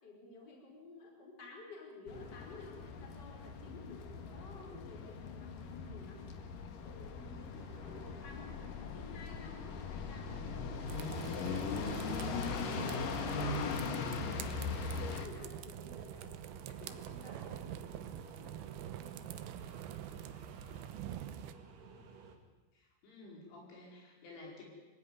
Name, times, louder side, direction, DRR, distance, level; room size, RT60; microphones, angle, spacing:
voice 1, 0.0-6.3 6.8-10.9 11.3-19.6, left 2 dB, 20° left, 0 dB, 4.9 m, -54 dB
sound 1, 2.1-15.3, left 5 dB, 55° left, 2.8 m, -40 dB
sound 2, 7.5-22.4, right 4 dB, 60° right, 4.0 m, -55 dB
sound 3, 10.9-21.5, right 11 dB, 80° right, 2.2 m, -45 dB
voice 2, 22.7-24.6, left 2 dB, 80° left, -1 dB, 7.7 m, -52 dB
25.0 x 16.5 x 9.6 m, 1.1 s
omnidirectional pair, 5.5 m